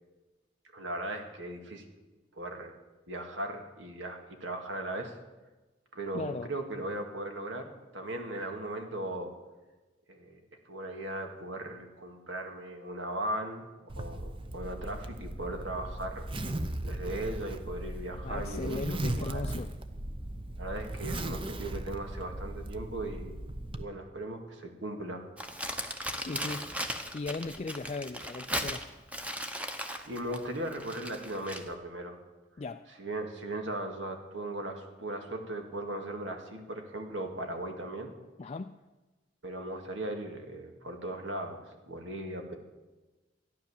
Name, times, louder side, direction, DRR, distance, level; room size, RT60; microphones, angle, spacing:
voice 1, 0.7-1.8 2.4-2.7 3.1-5.1 5.9-9.3 10.1-10.4 10.6-16.2 16.8-19.4 20.6-23.4 23.7-25.3 26.3-26.7 30.1-32.2 33.0-38.1 39.4-42.6, right 1 dB, 80° right, 4 dB, 2.2 m, -38 dB
voice 2, 6.1-6.5 18.2-19.7 26.2-26.7 27.1-28.8 32.6-32.8 38.4-38.7, left 3 dB, 35° left, 6 dB, 0.4 m, -37 dB
Zipper (clothing), 13.9-23.8, right 1 dB, 30° right, 0.8 m, -37 dB
Crumpling crinkling, 25.4-31.7, equal, 5° right, 1.0 m, -37 dB
14.5 x 10.5 x 7.2 m, 1.2 s
head